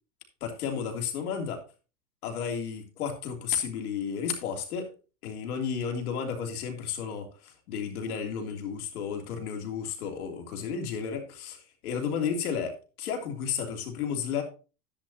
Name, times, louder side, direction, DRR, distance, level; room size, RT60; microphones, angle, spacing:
voice 1, 0.4-1.6 2.2-4.9 5.2-14.4, left 7 dB, 80° left, 4 dB, 3.2 m, -32 dB
10.5 x 10.5 x 2.9 m, 0.33 s
supercardioid pair, 155°, 44 cm